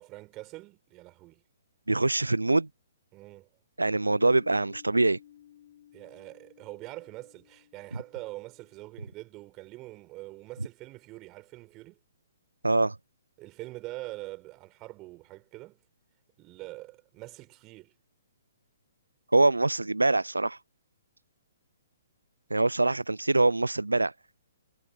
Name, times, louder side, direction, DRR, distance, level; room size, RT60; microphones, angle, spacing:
voice 1, 0.0-1.4 3.1-3.5 5.9-12.0 13.4-15.8 16.4-17.9, right 20 dB, 25° right, 4.9 m, -44 dB
voice 2, 1.9-2.7 3.8-5.2 12.6-13.0 19.3-20.6 22.5-24.1, right 2 dB, 80° right, 0.4 m, -24 dB
Piano, 4.1-9.5, left 11 dB, 50° left, 4.3 m, -56 dB
figure-of-eight pair, 125°, 0 cm